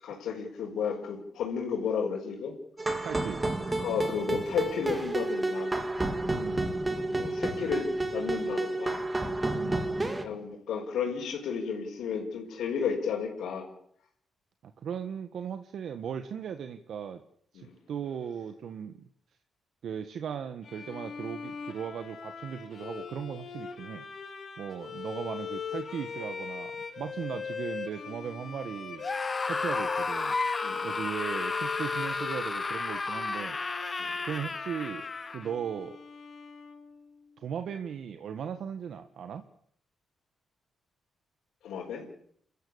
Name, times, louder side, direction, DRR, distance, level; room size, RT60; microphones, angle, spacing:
voice 1, 0.0-2.5 3.8-5.7 7.0-9.0 10.2-13.7 17.5-17.7 30.6-30.9 34.0-34.2 41.6-42.0, left 6 dB, 90° left, -5 dB, 5.6 m, -33 dB
sound 1, 2.8-10.3, right 2 dB, 15° right, 2.4 m, -30 dB
voice 2, 3.0-3.4 6.3-6.7 9.5-9.9 14.8-17.2 17.5-19.1 19.8-24.0 24.6-29.0 29.5-30.4 30.8-35.0 35.3-36.0 37.4-39.4, right 8 dB, 65° right, 8 dB, 1.5 m, -37 dB
Bowed string instrument, 20.6-37.2, left 6 dB, 50° left, 4.2 m, -40 dB
Screaming, 29.0-35.5, left 3 dB, 25° left, 1.1 m, -33 dB
29.5 x 14.5 x 8.6 m, 0.66 s
cardioid pair, 135°, 0 cm